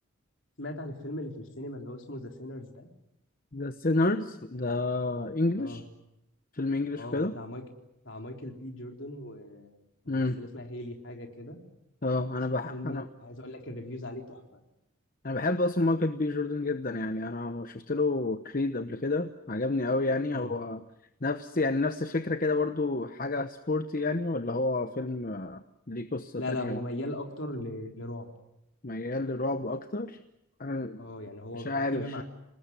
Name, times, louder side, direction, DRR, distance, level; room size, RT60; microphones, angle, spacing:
voice 1, 0.6-2.9 5.6-5.8 7.0-7.6 8.0-9.8 10.0-11.6 12.7-14.6 20.3-20.5 26.4-28.3 31.0-32.2, left 1 dB, 60° left, 3 dB, 4.0 m, -39 dB
voice 2, 3.5-5.8 6.5-7.3 10.1-10.4 12.0-13.1 15.2-20.8 21.2-26.8 28.8-30.2 30.6-31.0 31.5-32.2, left 2 dB, 40° left, 9 dB, 1.0 m, -30 dB
28.5 x 19.5 x 9.8 m, 0.88 s
head